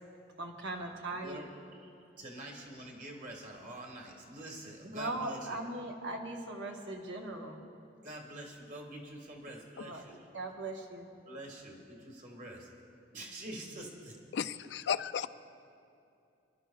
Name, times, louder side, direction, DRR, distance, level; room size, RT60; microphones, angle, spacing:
voice 1, 0.4-1.5 4.9-7.6 9.8-10.0 10.3-11.1, right 2 dB, 70° right, 1 dB, 1.2 m, -39 dB
voice 2, 1.2-1.9 2.2-5.6 8.0-10.2 11.2-12.7 13.1-14.1, right 1 dB, 45° right, 1 dB, 1.8 m, -46 dB
voice 3, 14.3-15.3, left 7 dB, 65° left, 13 dB, 0.3 m, -34 dB
27.5 x 11.5 x 2.3 m, 2.6 s
head